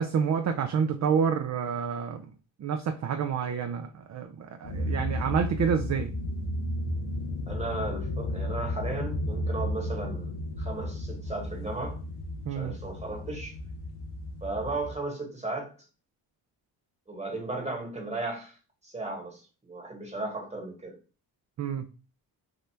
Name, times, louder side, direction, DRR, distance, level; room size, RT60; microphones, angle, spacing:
voice 1, 0.0-2.3 2.6-6.1 12.5-12.8 21.6-21.9, right 7 dB, 35° right, 0.4 m, -28 dB
sound 1, 4.6-14.9, left 1 dB, 85° left, 0.7 m, -33 dB
voice 2, 7.5-12.0 12.5-13.6 14.4-15.7 17.1-18.6 18.8-21.0, right 2 dB, 15° right, 1.3 m, -35 dB
2.8 x 2.1 x 3.2 m
supercardioid pair, 40°, 50 cm